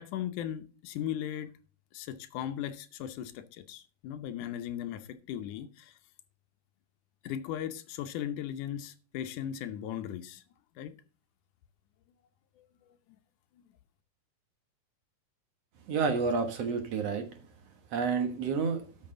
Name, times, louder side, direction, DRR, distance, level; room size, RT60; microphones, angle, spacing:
voice 1, 0.0-1.5 1.9-5.9 7.2-10.4 10.8-10.9 12.6-12.7, left 10 dB, 80° left, 2.3 m, -37 dB
voice 2, 15.9-17.2 17.9-18.8, right 5 dB, 60° right, 2.2 m, -29 dB
12.5 x 6.5 x 3.8 m
omnidirectional pair, 3.6 m